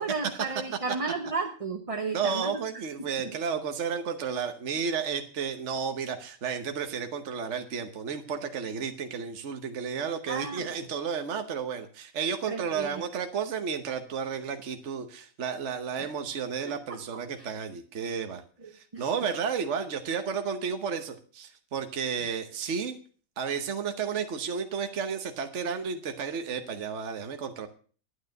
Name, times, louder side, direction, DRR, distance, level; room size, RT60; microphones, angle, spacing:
voice 1, 0.0-2.6 10.3-10.8 12.5-13.0 16.0-16.1 16.7-17.0 17.4-17.5 18.6-19.0, right 4 dB, 30° right, 5 dB, 1.1 m, -34 dB
voice 2, 2.1-18.4 18.7-23.0 23.4-27.7, right 6 dB, 60° right, 6 dB, 1.4 m, -32 dB
11.5 x 9.6 x 6.5 m, 0.41 s
omnidirectional pair, 1.4 m